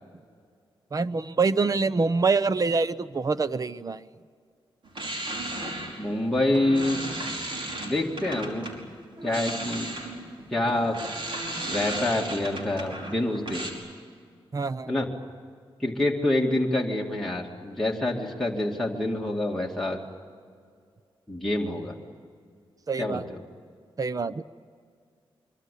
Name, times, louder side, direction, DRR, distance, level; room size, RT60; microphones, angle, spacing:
voice 1, 0.9-4.0 14.5-15.0 22.9-23.2 24.0-24.4, right 4 dB, 40° right, 15 dB, 0.8 m, -25 dB
sound 1, 4.9-8.8 9.2-13.7, right 1 dB, 60° right, 5.3 m, -35 dB
voice 2, 6.0-7.0 7.8-8.7 9.2-9.9 10.5-11.0 11.7-13.7 14.9-15.1 15.8-20.0 21.3-22.0 23.0-23.2, left 1 dB, 5° left, -3 dB, 2.5 m, -26 dB
25.0 x 24.0 x 8.6 m, 2.1 s
cardioid pair, 90°, 10 cm